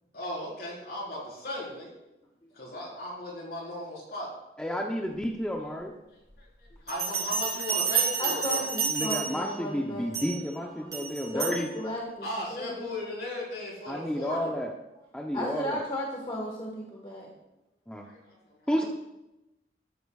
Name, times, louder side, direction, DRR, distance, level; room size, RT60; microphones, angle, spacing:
voice 1, 0.1-1.9 2.5-4.3 6.4-8.6 12.2-14.5 18.0-18.7, left 1 dB, 60° left, -4 dB, 4.2 m, -37 dB
voice 2, 4.6-5.9 8.8-11.7 13.9-14.7 15.1-15.8 17.9-18.1 18.7-18.8, equal, 5° left, 0 dB, 0.6 m, -31 dB
Bell, 6.9-9.6 10.1-10.4 10.9-11.6, right 6 dB, 20° right, 3.7 m, -30 dB
voice 3, 8.2-10.4 10.8-12.8 15.3-17.3, left 1 dB, 30° left, -2 dB, 1.4 m, -35 dB
13.5 x 11.0 x 2.4 m, 0.94 s
head